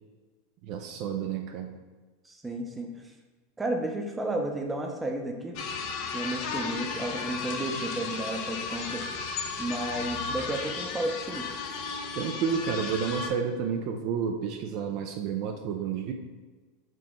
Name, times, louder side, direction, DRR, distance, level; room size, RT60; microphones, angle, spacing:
voice 1, 0.6-1.7 12.1-16.1, right 7 dB, 55° right, 5 dB, 0.4 m, -30 dB
voice 2, 2.2-2.9 3.6-5.6 6.1-9.1 9.6-11.5, right 1 dB, 15° right, 2 dB, 0.7 m, -32 dB
sound 1, 5.5-13.3, left 5 dB, 60° left, 0.6 m, -34 dB
5.0 x 2.8 x 3.6 m, 1.3 s
hypercardioid pair, 110°, 0 cm